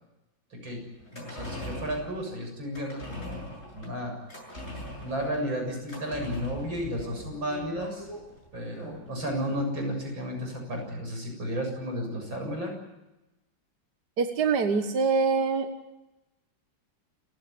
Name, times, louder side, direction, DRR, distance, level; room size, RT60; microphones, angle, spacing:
voice 1, 0.5-4.2 5.0-8.1 8.5-12.7, equal, 85° right, 3 dB, 8.2 m, -33 dB
sound 1, 0.9-9.6 9.9-10.0, left 1 dB, 35° left, 7.9 m, -42 dB
voice 2, 14.2-15.7, right 4 dB, 60° right, 6 dB, 1.9 m, -24 dB
29.5 x 16.5 x 9.5 m, 0.99 s
omnidirectional pair, 2.1 m